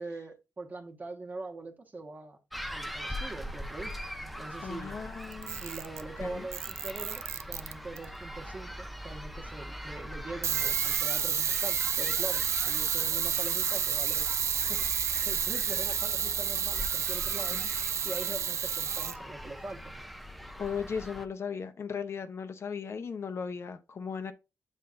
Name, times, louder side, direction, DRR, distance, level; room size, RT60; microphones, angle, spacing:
voice 1, 0.0-2.4 2.7-3.9 4.2-5.0 5.6-14.2 14.7-14.9 15.2-17.6 18.0-19.8, right 2 dB, 30° right, 1.3 m, -42 dB
sound 1, 2.5-21.3, equal, ahead, 0.6 m, -42 dB
voice 2, 4.6-5.6 6.2-6.5 17.5-17.7 20.6-24.3, left 6 dB, 50° left, 0.7 m, -37 dB
Camera, 5.3-6.1 6.5-8.0 10.4-19.2, right 8 dB, 60° right, 0.4 m, -30 dB
8.2 x 5.7 x 2.5 m
wide cardioid pair, 120°, 6 cm